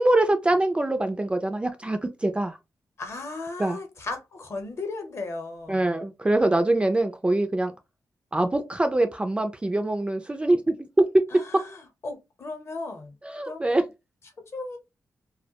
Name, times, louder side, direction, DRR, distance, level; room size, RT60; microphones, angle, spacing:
voice 1, 0.0-2.6 3.6-3.8 5.7-7.7 8.3-11.0 13.2-13.8, right 2 dB, 15° right, 0.3 m, -24 dB
voice 2, 3.0-5.9 11.3-13.1 13.5-13.8 14.5-14.8, left 3 dB, 45° left, 0.8 m, -36 dB
2.2 x 2.1 x 2.8 m
wide cardioid pair, 105°, 6 cm